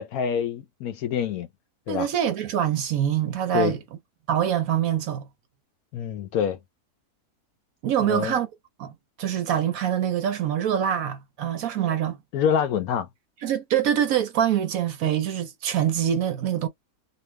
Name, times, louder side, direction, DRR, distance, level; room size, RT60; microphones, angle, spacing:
voice 1, 0.0-1.5 1.9-2.1 3.5-3.7 5.9-6.6 8.0-8.4 11.8-12.0 12.3-13.1, left 8 dB, 70° left, 1.0 m, -26 dB
voice 2, 1.9-3.8 4.3-5.3 7.8-8.5 8.8-8.9 9.2-12.2 13.4-16.7, right 10 dB, 70° right, 1.0 m, -24 dB
2.8 x 2.3 x 3.2 m
omnidirectional pair, 1.7 m